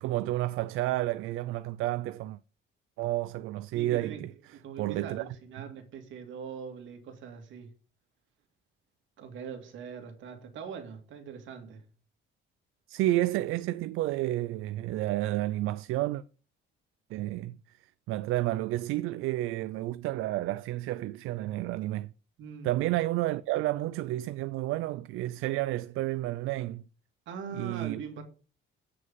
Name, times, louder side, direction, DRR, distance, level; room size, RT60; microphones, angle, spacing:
voice 1, 0.0-2.4 3.0-4.3 4.8-5.3 12.9-16.2 17.1-17.6 18.1-22.1 22.6-26.8 27.5-28.0, right 16 dB, 85° right, 0.4 m, -30 dB
voice 2, 3.7-4.2 4.5-7.7 9.2-11.8 22.4-22.7 27.3-28.2, right 6 dB, 70° right, 2.3 m, -42 dB
7.8 x 6.2 x 5.6 m
cardioid pair, 160°, 21 cm